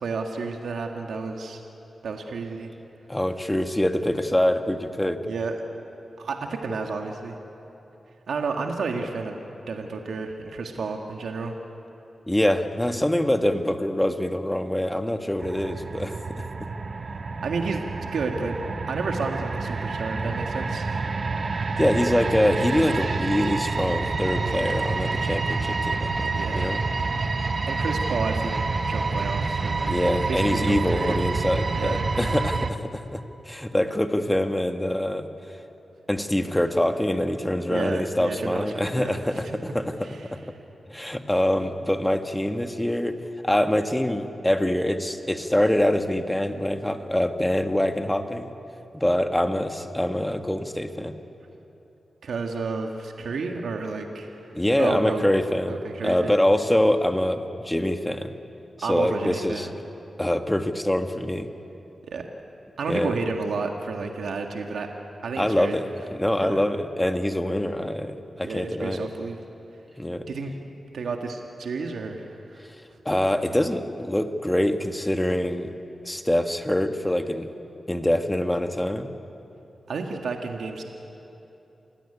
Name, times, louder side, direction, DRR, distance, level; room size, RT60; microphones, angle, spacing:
voice 1, 0.0-1.6 2.0-2.7 5.2-5.6 6.2-7.4 8.3-9.4 9.7-11.5 17.4-18.6 18.9-21.0 26.3-26.6 27.7-29.9 30.3-31.2 31.7-32.0 37.7-39.6 40.0-40.3 52.2-54.4 54.8-55.2 55.7-56.4 58.8-59.7 62.0-62.2 62.8-64.9 65.2-65.8 66.4-66.6 68.4-69.4 70.3-70.7 70.9-72.6 79.9-80.8, right 4 dB, 90° right, 3 dB, 1.8 m, -31 dB
voice 2, 3.1-5.2 12.3-16.7 21.8-26.8 29.9-35.3 36.1-40.4 40.9-43.2 43.4-48.5 48.9-51.1 54.5-55.8 56.0-58.3 58.8-59.7 60.2-61.5 62.9-63.1 65.4-69.1 70.0-70.2 73.0-75.7 76.0-77.5 77.9-79.1, left 1 dB, 10° left, 7 dB, 1.5 m, -25 dB
sound 1, 15.4-32.7, right 4 dB, 45° right, 1.1 m, -28 dB
28.5 x 17.0 x 9.9 m, 3.0 s
wide cardioid pair, 95°, 0 cm